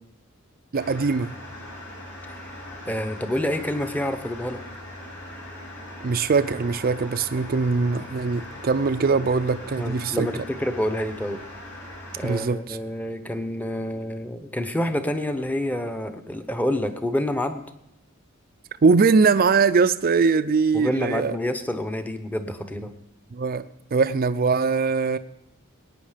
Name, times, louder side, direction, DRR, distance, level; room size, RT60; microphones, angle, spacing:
sound 1, 0.7-12.4, left 1 dB, 60° left, 6.7 m, -40 dB
voice 1, 0.7-1.3 6.0-10.3 12.2-12.8 18.8-21.4 23.3-23.6 23.9-25.2, right 4 dB, 45° right, 10 dB, 0.4 m, -21 dB
voice 2, 2.9-4.6 9.8-11.4 12.2-17.6 20.7-22.9, left 1 dB, 10° left, 8 dB, 0.9 m, -28 dB
20.0 x 9.2 x 5.1 m, 0.81 s
head